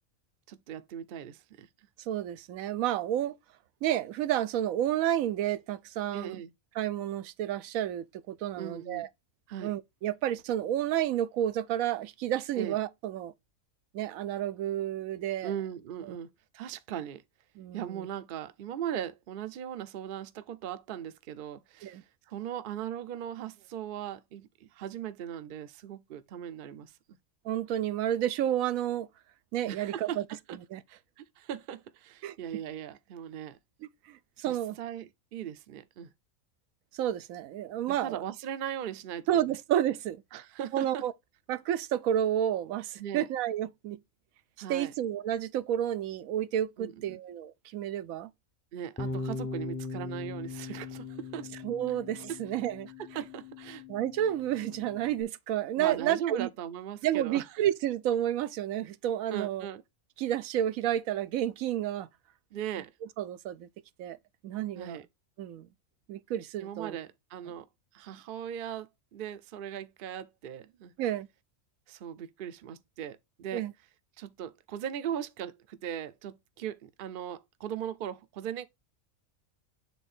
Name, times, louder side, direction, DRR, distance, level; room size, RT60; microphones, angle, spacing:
voice 1, 0.5-1.7 6.1-6.5 8.6-9.1 9.5-9.7 12.6-12.8 15.4-17.2 17.7-22.0 22.3-26.9 29.7-30.2 30.5-30.6 30.9-33.6 34.4-36.1 37.9-39.5 40.3-41.1 43.0-43.3 44.6-44.9 46.8-47.2 48.7-51.5 53.1-53.8 55.8-57.5 59.3-59.8 62.5-62.9 64.7-65.1 66.6-67.7 67.9-70.9 71.9-73.7 74.2-78.7, right 10 dB, 55° right, 0.6 m, -39 dB
voice 2, 2.1-3.4 3.8-6.4 6.8-9.1 9.6-13.3 13.9-15.5 16.1-16.2 17.6-18.1 21.8-22.0 27.4-29.1 29.5-30.2 30.7-30.8 32.2-32.3 34.1-34.8 36.9-38.2 39.3-40.2 40.7-41.1 41.5-44.0 44.7-48.3 51.6-52.9 53.9-56.5 57.0-59.7 60.2-62.1 63.2-63.7 64.0-64.2 64.4-65.0 65.4-65.7 66.1-67.0 71.0-71.3 73.5-73.7, right 11 dB, 85° right, 1.0 m, -30 dB
Bass guitar, 49.0-55.2, left 3 dB, 15° left, 0.5 m, -40 dB
7.3 x 3.5 x 4.2 m
omnidirectional pair, 1.4 m